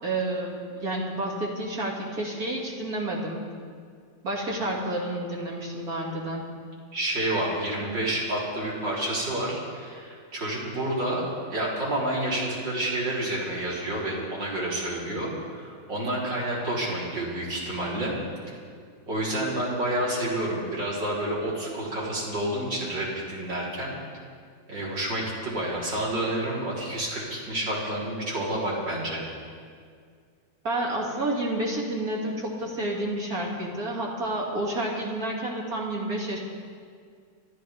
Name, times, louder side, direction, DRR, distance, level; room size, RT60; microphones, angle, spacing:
voice 1, 0.0-3.4 4.2-6.4 30.6-36.4, right 1 dB, 50° right, -2 dB, 3.0 m, -30 dB
voice 2, 6.9-18.2 18.5-18.6 19.1-23.9 24.7-29.2, right 1 dB, 75° right, -6 dB, 4.7 m, -29 dB
27.5 x 13.0 x 3.6 m, 2.1 s
omnidirectional pair, 2.0 m